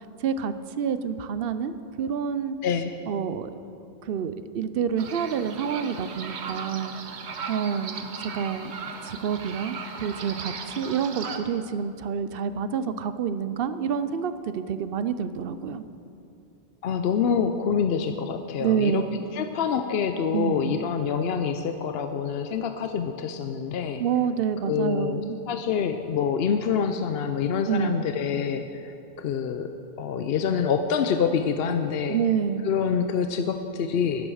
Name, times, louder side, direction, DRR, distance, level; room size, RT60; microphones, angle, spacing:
voice 1, 0.2-2.6 3.1-7.0 7.5-8.7 9.0-15.8 18.6-19.2 20.3-20.8 24.0-25.4 27.7-28.0 32.1-32.7, right 7 dB, 65° right, 12 dB, 0.7 m, -28 dB
voice 2, 2.6-3.0 16.8-19.0 19.3-24.0 24.6-32.2 32.6-34.3, left 7 dB, 70° left, 7 dB, 0.8 m, -26 dB
sound 1, 5.0-11.4, right 5 dB, 80° right, 1.1 m, -37 dB
11.0 x 10.5 x 6.3 m, 2.6 s
omnidirectional pair, 1.1 m